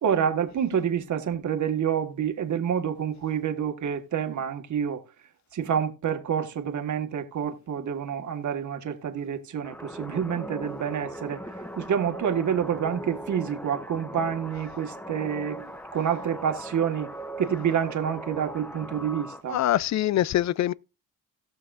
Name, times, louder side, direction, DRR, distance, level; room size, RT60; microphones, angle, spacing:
voice 1, 0.0-5.0 5.5-11.4 11.8-17.1 17.4-19.6, right 8 dB, 50° right, 1.6 m, -28 dB
sound 1, 9.6-19.4, right 1 dB, 5° left, 0.8 m, -39 dB
voice 2, 19.5-20.7, left 13 dB, 50° left, 0.5 m, -24 dB
17.5 x 6.4 x 2.5 m
cardioid pair, 95°, 37 cm